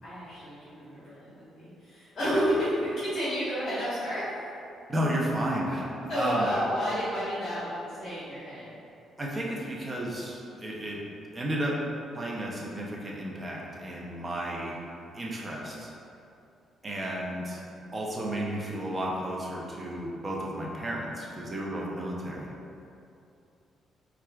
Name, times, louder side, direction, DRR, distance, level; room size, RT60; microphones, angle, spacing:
voice 1, 0.0-4.2 6.1-8.7 16.9-17.0, equal, 45° left, -12 dB, 1.2 m, -31 dB
voice 2, 4.9-6.5 9.2-11.0 11.3-11.8 12.1-14.8 15.1-15.9 16.8-17.6 17.9-22.5, right 1 dB, 25° right, -3 dB, 0.6 m, -32 dB
4.3 x 2.4 x 2.3 m, 2.6 s
cardioid pair, 90°, 0 cm